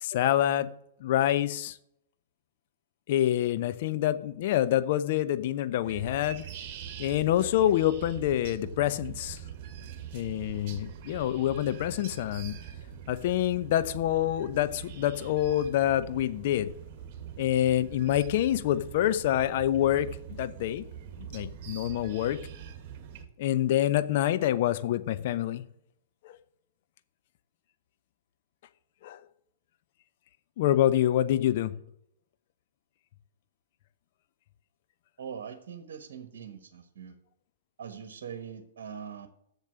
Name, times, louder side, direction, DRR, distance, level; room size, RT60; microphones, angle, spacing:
voice 1, 0.0-0.7 1.0-1.8 3.1-6.4 7.0-9.4 10.1-12.5 13.1-16.7 17.4-20.1 20.4-20.8 21.3-22.4 23.4-25.6 26.2-26.4 29.0-29.2 30.6-31.7, left 12 dB, 55° left, 13 dB, 0.8 m, -26 dB
sound 1, 5.8-23.3, right 8 dB, 45° right, 1.7 m, -43 dB
voice 2, 35.2-37.1 37.8-39.3, right 7 dB, 65° right, 8 dB, 1.3 m, -42 dB
7.4 x 7.3 x 8.3 m, 0.73 s
hypercardioid pair, 110°, 0 cm